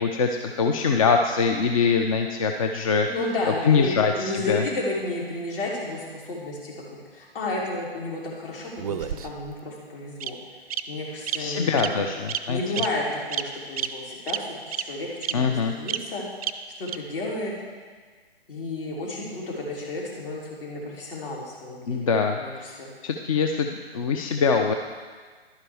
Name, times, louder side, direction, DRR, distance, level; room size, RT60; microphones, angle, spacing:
voice 1, 0.0-3.1 3.6-4.6 11.4-12.6 15.3-15.7 21.9-22.7 23.0-24.7, left 5 dB, 35° left, 4 dB, 0.5 m, -23 dB
voice 2, 3.0-12.0 12.5-16.2 16.8-17.5 18.5-22.1 22.4-22.9, left 2 dB, 60° left, -3 dB, 3.3 m, -32 dB
Bird vocalization bird call bird song, 8.8-9.5 10.2-10.3 10.7-10.8 11.3-11.4 11.8-11.9 12.3-12.4 12.8-12.9 13.3-13.5 13.8-13.9 14.3-14.4 14.7-14.8 15.2-15.3 15.9-16.0 16.4-16.5 16.9-17.0, right 10 dB, 35° right, 0.4 m, -28 dB
11.5 x 9.8 x 3.5 m, 1.5 s
figure-of-eight pair, 135°, 31 cm